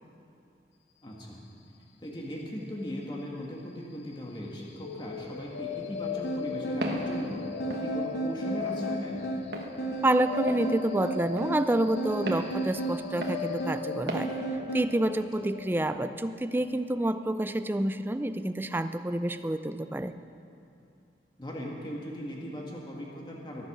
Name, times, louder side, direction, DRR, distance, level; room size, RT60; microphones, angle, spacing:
voice 1, 1.0-1.4 2.0-7.4 7.8-9.2 15.4-15.5 21.4-23.6, equal, 25° left, -2 dB, 1.6 m, -38 dB
sound 1, 4.8-18.7, left 7 dB, 80° left, 0.7 m, -39 dB
sound 2, 6.2-14.9, right 3 dB, 55° left, 1.3 m, -34 dB
Walk footsteps, 6.8-7.1 7.7-7.9 8.6-8.8 9.5-9.7 10.5-10.7 11.4-11.5 12.3-12.5 13.2-13.4 14.1-14.3, right 1 dB, 65° right, 1.4 m, -34 dB
voice 2, 10.0-14.3 14.7-20.1, right 1 dB, 10° right, 10 dB, 0.4 m, -28 dB
23.0 x 8.0 x 6.1 m, 2.6 s
head